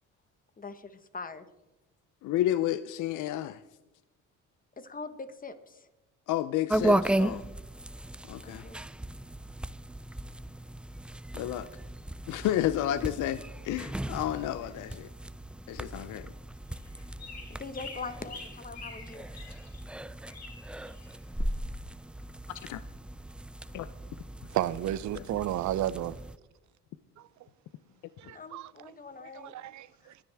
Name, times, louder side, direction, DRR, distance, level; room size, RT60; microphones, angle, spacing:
voice 1, 0.6-1.5 4.8-5.8 8.4-8.8 17.5-19.3 28.3-29.5, left 4 dB, 30° left, 1.3 m, -42 dB
voice 2, 2.2-3.6 6.3-7.5 8.3-8.6 11.3-11.7 12.3-15.1 15.7-16.3 22.5-22.8 23.7-23.9, left 13 dB, 85° left, 0.6 m, -31 dB
sound 1, 6.7-26.4, right 1 dB, 5° right, 0.4 m, -36 dB
sound 2, 16.7-19.8 20.3-21.1, left 4 dB, 60° left, 3.2 m, -47 dB
voice 3, 24.5-26.2 27.2-27.3 28.2-28.9 29.2-30.2, right 13 dB, 70° right, 0.6 m, -33 dB
21.5 x 10.5 x 3.5 m
cardioid pair, 90°, 30 cm